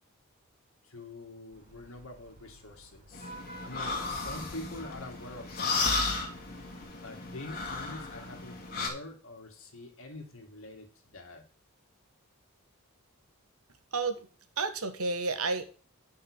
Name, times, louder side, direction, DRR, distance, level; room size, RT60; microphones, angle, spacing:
voice 1, 0.8-3.3 3.6-6.0 7.0-11.4, left 2 dB, 70° left, 3 dB, 2.3 m, -45 dB
Vehicle horn car horn honking / Traffic noise roadway noise, 1.5-6.8, right 1 dB, 40° right, 2.6 m, -53 dB
sound 1, 3.1-8.9, left 3 dB, 45° left, 2.5 m, -34 dB
voice 2, 13.9-14.3 14.6-15.7, right 3 dB, 85° right, 10 dB, 1.4 m, -31 dB
9.6 x 5.5 x 6.3 m, 0.38 s
head